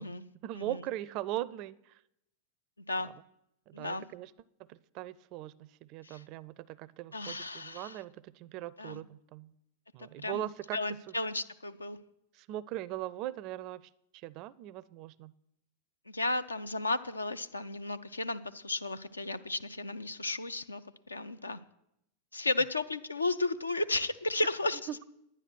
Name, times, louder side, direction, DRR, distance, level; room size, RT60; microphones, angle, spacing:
voice 1, 0.4-1.8 3.7-4.3 4.7-9.5 9.9-10.8 12.4-13.8 14.2-15.3 24.9-25.0, right 14 dB, 40° right, 21 dB, 0.4 m, -40 dB
voice 2, 3.7-4.1 6.0-6.2 7.1-8.0 8.8-9.0 10.0-10.5 10.7-12.0 16.1-21.6 22.3-24.8, left 2 dB, 80° left, 12 dB, 0.5 m, -34 dB
9.9 x 9.8 x 6.2 m, 0.81 s
figure-of-eight pair, 90°, 0 cm